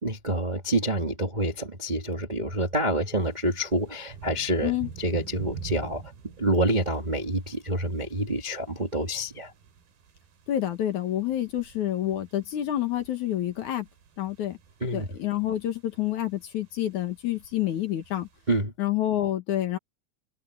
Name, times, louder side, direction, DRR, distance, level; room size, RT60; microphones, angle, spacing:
voice 1, 0.0-6.0 6.4-9.5 14.8-15.1 18.5-18.7, right 1 dB, 20° right, 1.1 m, -27 dB
sound 1, 3.2-18.5, right 6 dB, 80° right, 4.6 m, -46 dB
voice 2, 10.5-13.9 14.2-14.6 14.9-18.3 18.8-19.8, left 12 dB, 60° left, 2.6 m, -28 dB
omnidirectional pair, 4.2 m